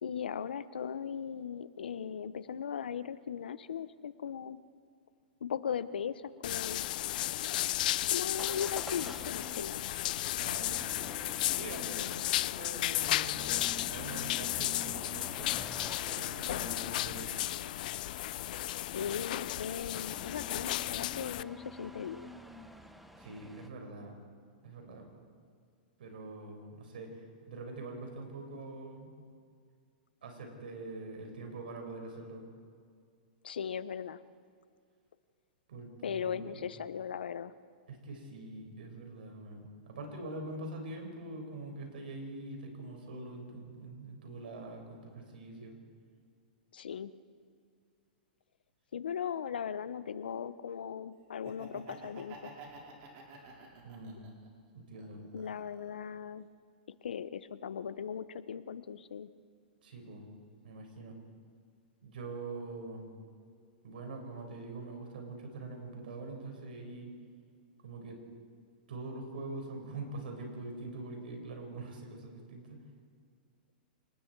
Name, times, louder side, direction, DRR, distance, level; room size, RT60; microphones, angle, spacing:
voice 1, 0.0-4.6 5.4-6.8 8.1-9.8 18.9-22.3 33.4-34.2 36.0-37.5 46.7-47.1 48.9-52.5 55.3-56.5 57.0-59.3, left 7 dB, 85° left, 15 dB, 0.9 m, -38 dB
sound 1, 6.4-21.4, left 15 dB, 60° left, 0.4 m, -34 dB
Motor vehicle (road) / Engine starting / Accelerating revving vroom, 8.4-23.7, left 1 dB, ahead, 1.2 m, -49 dB
voice 2, 10.3-10.9 11.5-13.6 13.9-15.5 16.1-17.3 23.1-24.1 24.6-25.1 26.0-29.1 30.2-32.4 35.7-36.6 37.9-45.8 53.8-54.2 54.7-55.2 59.8-60.2 60.6-61.1 62.0-63.1 63.8-67.1 67.8-68.2 68.9-72.8, right 2 dB, 75° right, 3 dB, 5.7 m, -44 dB
Laughter, 51.3-54.5 54.9-56.0, right 3 dB, 45° right, 5.1 m, -50 dB
28.5 x 19.5 x 4.7 m, 2.2 s
hypercardioid pair, 130°, 5 cm